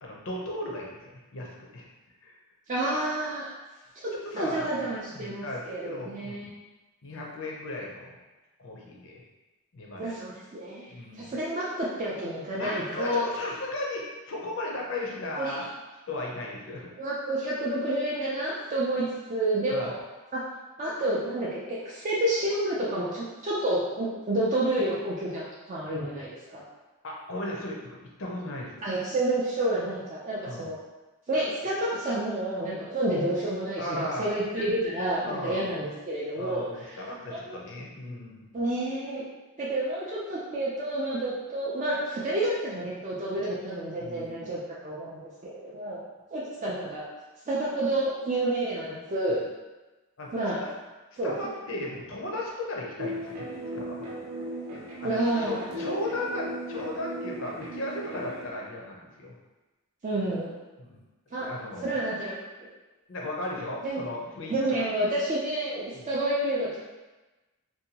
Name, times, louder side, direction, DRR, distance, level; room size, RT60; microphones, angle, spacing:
voice 1, 0.0-1.9 2.2-2.4 4.1-4.7 5.1-6.5 7.0-8.2 8.6-9.2 9.7-10.1 10.9-11.3 12.6-15.7 16.1-16.9 19.7-19.9 27.0-28.8 30.5-30.7 33.8-34.3 35.2-35.7 36.4-38.4 43.3-43.5 43.9-44.5 49.3-49.4 50.2-50.3 51.2-53.5 53.8-54.1 55.0-59.3 60.8-61.0 61.4-62.0 63.1-64.9 65.9-66.0, left 1 dB, 55° left, -2 dB, 0.5 m, -36 dB
voice 2, 2.7-3.5 4.0-6.5 10.0-10.9 11.2-13.3 15.4-15.5 17.0-20.0 20.3-20.4 20.8-26.6 28.8-30.8 31.3-37.0 37.3-37.6 38.5-39.2 39.6-46.0 46.3-47.0 47.5-49.4 50.3-50.6 51.2-51.4 55.0-56.0 60.0-60.5 61.3-61.5 61.8-62.3 63.8-64.0 64.5-66.8, right 1 dB, 35° right, -7 dB, 0.3 m, -29 dB
sound 1, 53.0-58.4, equal, 85° right, 0.7 m, -37 dB
2.6 x 2.2 x 2.8 m, 1.1 s
head